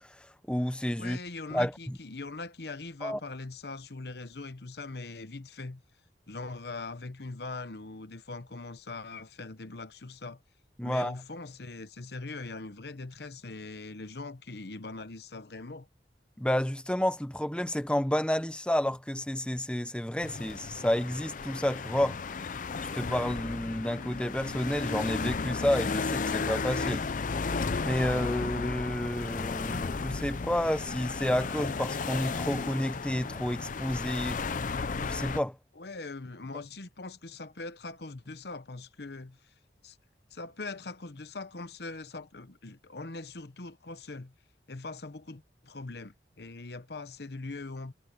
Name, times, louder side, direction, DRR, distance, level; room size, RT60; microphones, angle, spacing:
voice 1, 0.0-1.2 1.5-2.0 3.0-3.2 10.8-11.1 16.4-22.2 22.9-27.1 27.9-34.4 35.0-35.6, equal, 5° left, 0.8 m, -30 dB
voice 2, 1.0-5.8 6.3-10.4 10.8-15.9 35.8-39.4 39.8-40.0 40.3-44.3 44.7-47.9, left 3 dB, 65° left, 1.0 m, -41 dB
sound 1, 20.2-35.4, left 4 dB, 45° left, 0.5 m, -34 dB
head